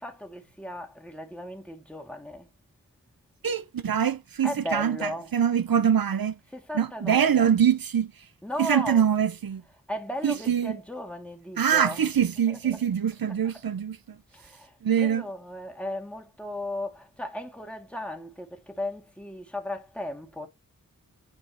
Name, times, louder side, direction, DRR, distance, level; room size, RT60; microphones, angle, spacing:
voice 1, 0.0-2.5 4.4-5.3 6.5-7.5 8.4-9.0 9.9-12.0 12.5-12.8 13.5-13.6 14.3-20.5, left 1 dB, 5° left, 2.1 m, -36 dB
voice 2, 3.4-6.4 6.7-8.1 8.6-9.6 10.2-10.8 11.6-14.0 14.8-15.2, right 8 dB, 80° right, 0.7 m, -24 dB
10.5 x 4.3 x 2.9 m
wide cardioid pair, 75°, 35 cm